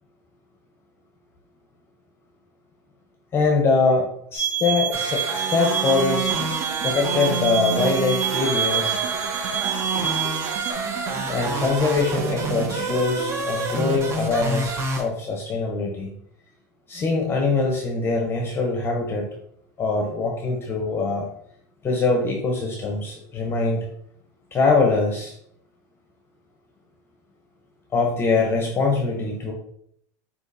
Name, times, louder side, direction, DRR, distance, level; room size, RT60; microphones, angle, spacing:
voice 1, 3.3-6.4 6.8-9.0 11.3-16.1 16.9-19.3 19.8-21.3 21.8-23.9 24.5-25.3 27.9-29.5, left 4 dB, 25° left, 1 dB, 0.8 m, -23 dB
sound 1, 4.3-10.7, right 9 dB, 80° right, 1.6 m, -28 dB
sound 2, 4.9-15.0, right 3 dB, 30° right, 0.9 m, -28 dB
sound 3, 6.0-14.3, right 9 dB, 50° right, 0.4 m, -36 dB
6.2 x 2.8 x 2.7 m, 0.69 s
supercardioid pair, 115°, 10 cm